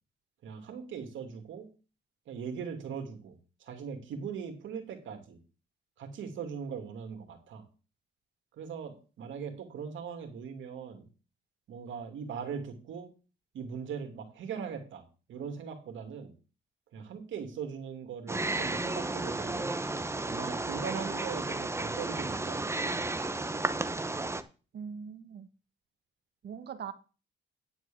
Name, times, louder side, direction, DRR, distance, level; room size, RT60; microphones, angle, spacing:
voice 1, 0.4-1.7 2.3-5.4 6.0-7.6 8.5-11.1 11.7-13.1 13.5-15.0 15.3-16.3 16.9-22.9, right 6 dB, 75° right, 4 dB, 2.6 m, -40 dB
Wild animals, 18.3-24.4, right 2 dB, 15° right, 0.9 m, -33 dB
voice 2, 24.7-25.5 26.4-26.9, right 7 dB, 55° right, 10 dB, 1.4 m, -41 dB
10.0 x 4.8 x 7.5 m, 0.35 s
cardioid pair, 90°, 20 cm